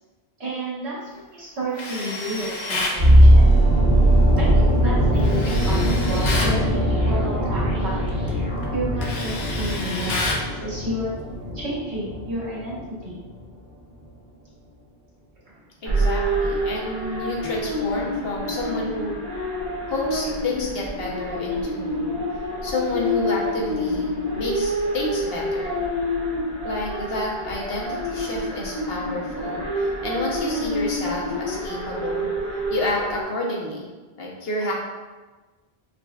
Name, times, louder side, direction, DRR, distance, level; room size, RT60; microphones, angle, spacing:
voice 1, 0.4-1.0 1.3-3.5 4.4-8.0 8.7-11.1 11.5-13.2 15.4-15.5, right 1 dB, 85° right, -7 dB, 1.4 m, -31 dB
Tools, 1.7-3.0 5.2-6.6 8.1-8.3 8.6-10.5, left 2 dB, 55° left, 0.6 m, -29 dB
sound 1, 3.0-13.0 13.2-13.4, right 1 dB, 45° right, 1.2 m, -19 dB
voice 2, 15.8-19.2 19.9-22.1 22.6-25.7 26.6-32.3 32.7-33.9 34.2-34.7, left 2 dB, 70° left, -3 dB, 1.0 m, -29 dB
sound 2, 15.9-33.2, equal, 70° right, 1.1 m, -27 dB
5.1 x 2.2 x 2.3 m, 1.3 s
omnidirectional pair, 1.1 m